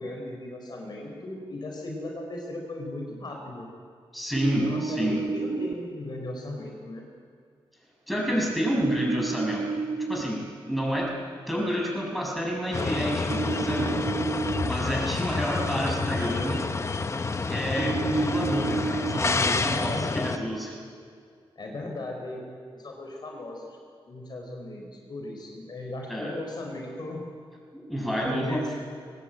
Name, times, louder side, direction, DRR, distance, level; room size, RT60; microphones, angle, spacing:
voice 1, 0.0-3.7 4.5-7.1 19.6-20.4 21.6-22.4 22.7-23.7 24.1-27.3 28.0-28.7, left 2 dB, 50° left, 1 dB, 4.5 m, -37 dB
voice 2, 4.1-5.2 8.1-10.4 10.7-11.1 11.5-14.0 14.6-16.6 17.4-20.7 26.1-26.3 27.7-28.7, equal, ahead, -2 dB, 6.6 m, -29 dB
sound 1, 4.4-5.7 8.8-10.2 13.3-14.7 17.8-19.2, right 4 dB, 60° right, 1.1 m, -30 dB
sound 2, 12.7-20.4, left 4 dB, 30° left, 0.9 m, -29 dB
22.0 x 19.0 x 9.1 m, 2.1 s
wide cardioid pair, 125°, 10 cm